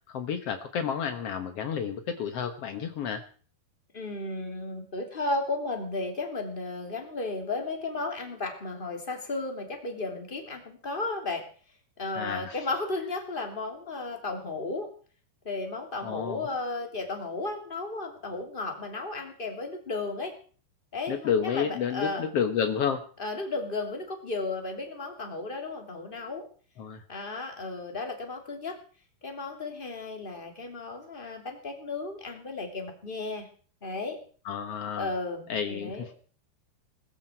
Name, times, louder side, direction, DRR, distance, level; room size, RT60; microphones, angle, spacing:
voice 1, 0.1-3.2 12.2-12.7 16.0-16.5 21.1-23.0 26.8-27.0 34.4-35.1 35.5-36.1, left 7 dB, 85° left, 7 dB, 1.3 m, -30 dB
voice 2, 3.9-11.4 12.0-14.9 15.4-20.3 20.9-22.3 23.2-26.5 27.1-28.8 29.2-33.5 33.8-34.2 35.0-36.1, left 3 dB, 15° left, 3 dB, 2.5 m, -34 dB
20.5 x 14.0 x 4.5 m, 0.42 s
omnidirectional pair, 4.7 m